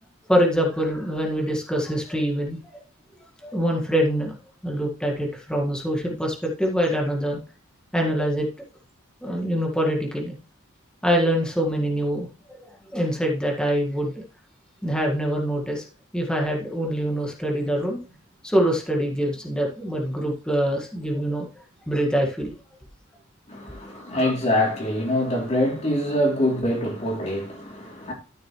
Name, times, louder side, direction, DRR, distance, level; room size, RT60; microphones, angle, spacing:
voice 1, 0.3-2.6 3.4-4.4 4.6-7.4 7.9-8.5 9.2-10.3 11.0-12.6 12.9-14.1 14.8-15.8 16.1-18.0 18.4-21.5 21.9-22.5 23.9-24.0, equal, 5° left, 1.8 m, -24 dB
voice 2, 23.5-28.1, left 1 dB, 35° left, 3.1 m, -24 dB
13.0 x 6.4 x 3.2 m
head